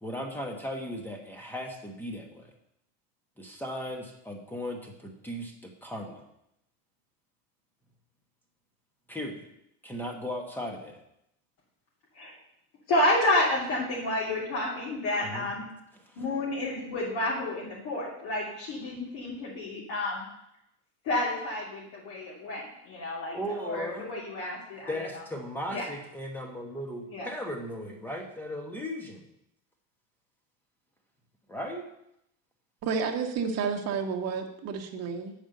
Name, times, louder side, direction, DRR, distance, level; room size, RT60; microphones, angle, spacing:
voice 1, 0.0-2.5 3.4-6.2 9.1-9.5 9.8-11.0 15.2-15.5 16.1-16.2 23.3-24.1 24.9-29.3 31.5-31.9, equal, 5° left, 2 dB, 1.1 m, -37 dB
voice 2, 12.9-15.6 16.2-20.2 21.0-25.2 25.7-25.9 27.1-27.3, left 1 dB, 55° left, -7 dB, 3.0 m, -30 dB
voice 3, 32.8-35.3, right 5 dB, 35° right, 2 dB, 1.3 m, -30 dB
8.7 x 5.2 x 6.6 m, 0.80 s
cardioid pair, 155°, 45 cm